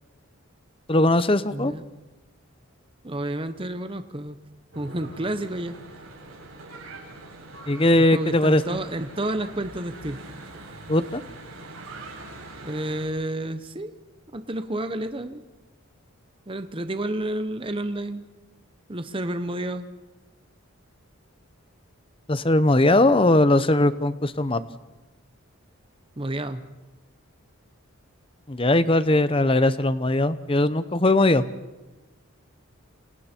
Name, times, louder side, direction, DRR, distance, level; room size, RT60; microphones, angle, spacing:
voice 1, 0.9-1.7 7.7-8.8 10.9-11.2 22.3-24.6 28.5-31.4, left 2 dB, 25° left, 14 dB, 0.8 m, -20 dB
voice 2, 1.5-1.8 3.0-4.4 4.8-5.7 8.0-10.2 12.6-13.9 14.3-15.4 16.5-18.2 18.9-19.9 26.2-26.6, right 1 dB, 25° right, 10 dB, 0.9 m, -30 dB
Church bell / Traffic noise roadway noise, 4.7-13.1, right 2 dB, 70° right, 7.8 m, -43 dB
27.5 x 27.5 x 4.5 m, 1.1 s
head